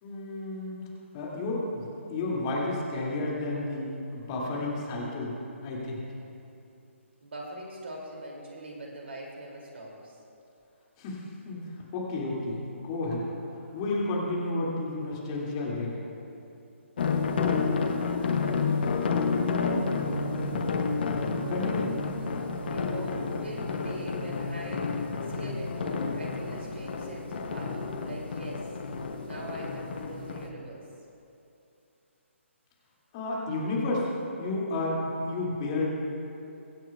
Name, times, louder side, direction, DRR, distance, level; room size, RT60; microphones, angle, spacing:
voice 1, 0.0-0.9 1.1-5.4 5.6-6.0 11.0-13.4 13.7-16.0 20.3-20.8 21.5-22.0 33.1-34.1 34.4-35.9, left 2 dB, 25° left, -4 dB, 2.4 m, -32 dB
voice 2, 7.2-10.2 22.6-28.7 29.2-30.9, right 1 dB, 60° right, -2 dB, 2.6 m, -42 dB
sound 1, 17.0-30.5, left 4 dB, 45° left, 1.0 m, -30 dB
23.5 x 8.9 x 2.4 m, 2.7 s
figure-of-eight pair, 140°, 7 cm